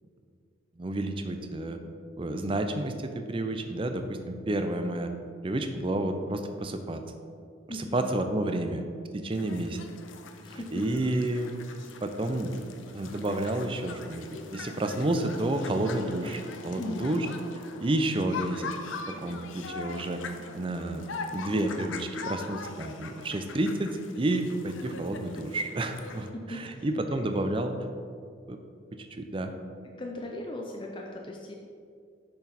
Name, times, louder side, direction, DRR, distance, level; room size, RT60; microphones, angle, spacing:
voice 1, 0.8-1.8 2.2-5.1 5.4-7.0 7.7-8.9 9.1-9.8 10.5-11.6 12.0-17.3 17.8-18.7 19.1-20.2 20.5-21.0 21.3-27.7 28.5-28.6 28.9-29.5, right 1 dB, 25° right, 7 dB, 0.4 m, -30 dB
voice 2, 7.7-8.0 10.4-10.8 16.8-17.1 26.3-26.9 27.1-27.3 30.0-31.5, left 1 dB, 25° left, 0 dB, 0.5 m, -38 dB
sound 1, 9.3-26.3, left 4 dB, 75° left, 0.6 m, -42 dB
6.5 x 6.1 x 4.2 m, 2.3 s
head